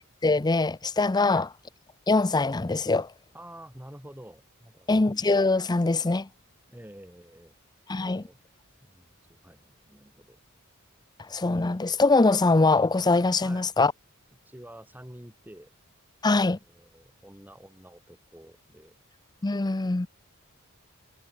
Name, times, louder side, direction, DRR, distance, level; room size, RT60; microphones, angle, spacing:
voice 1, 0.0-1.5 2.1-3.1 4.9-6.3 7.9-8.2 11.2-13.9 16.2-16.6 19.4-20.1, left 3 dB, 20° left, 0.5 m, -23 dB
voice 2, 3.3-5.0 6.7-7.6 8.0-8.4 8.8-10.4 13.4-13.7 14.5-15.7 16.7-19.0 19.8-20.1, right 1 dB, 10° right, 5.7 m, -48 dB
head